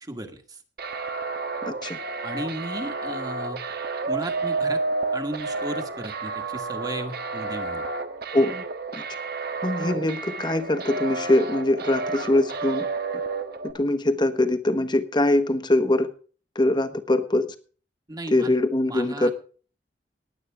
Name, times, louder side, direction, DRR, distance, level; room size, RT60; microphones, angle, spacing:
voice 1, 0.0-0.6 2.2-3.6 4.1-4.8 5.1-7.9 9.9-10.0 18.1-18.5 18.8-19.3, right 1 dB, 20° right, 6 dB, 1.7 m, -35 dB
sound 1, 0.8-13.7, right 3 dB, 65° right, 1.3 m, -30 dB
voice 2, 1.6-2.0 8.3-8.6 8.9-9.0 9.6-12.9 13.7-16.1 16.5-17.5 18.3-19.3, left 1 dB, 25° left, 9 dB, 1.3 m, -22 dB
19.5 x 8.6 x 3.6 m, 0.40 s
head